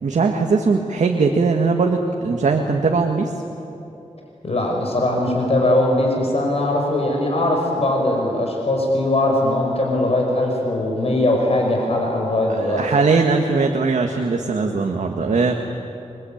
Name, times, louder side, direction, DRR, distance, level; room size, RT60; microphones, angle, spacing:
voice 1, 0.0-3.3 12.5-15.5, right 4 dB, 80° right, 2 dB, 1.8 m, -20 dB
voice 2, 4.4-12.8, left 1 dB, 55° left, 0 dB, 5.5 m, -20 dB
27.0 x 24.0 x 8.8 m, 2.9 s
wide cardioid pair, 95°, 12 cm